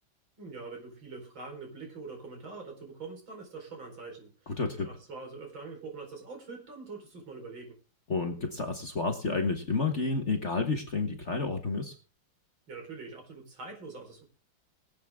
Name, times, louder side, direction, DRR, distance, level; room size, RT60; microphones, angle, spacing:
voice 1, 0.4-7.8 12.7-14.2, right 4 dB, 70° right, 2 dB, 5.2 m, -44 dB
voice 2, 4.6-4.9 8.1-11.9, left 3 dB, 40° left, 5 dB, 1.5 m, -30 dB
22.0 x 8.4 x 3.6 m, 0.35 s
omnidirectional pair, 2.3 m